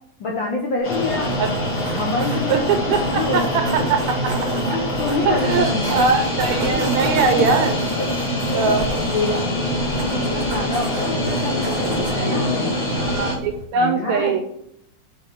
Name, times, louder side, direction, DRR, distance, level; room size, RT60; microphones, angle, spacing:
voice 1, 0.2-1.4 1.8-3.9 4.7-6.1 6.5-7.2 8.0-8.1 8.4-9.5 10.0-12.8 13.7-14.4, left 3 dB, 75° left, -1 dB, 1.1 m, -27 dB
sound 1, 0.8-13.4, left 1 dB, 50° left, 2.3 m, -24 dB
sound 2, 0.8-1.0 2.1-3.1 3.3-3.6 4.1-4.3 4.5-6.1 6.5-6.6 6.9-8.3, left 2 dB, 20° left, 1.2 m, -34 dB
sound 3, 0.9-13.6, right 3 dB, 60° right, 1.0 m, -32 dB
voice 2, 2.5-4.3 5.2-7.8 8.5-8.9 11.3-11.4 12.1-12.5 13.0-14.4, right 4 dB, 75° right, 6 dB, 1.8 m, -21 dB
7.1 x 4.7 x 6.1 m, 0.73 s
omnidirectional pair, 3.8 m